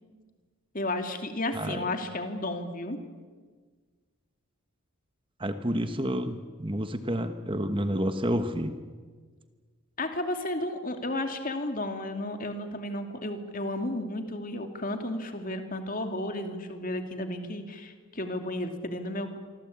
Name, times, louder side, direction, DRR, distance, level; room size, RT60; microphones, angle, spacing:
voice 1, 0.7-3.0 10.0-19.4, left 1 dB, 40° left, 6 dB, 2.7 m, -33 dB
voice 2, 5.4-8.8, equal, 25° right, 9 dB, 1.2 m, -29 dB
26.5 x 24.5 x 8.7 m, 1.5 s
head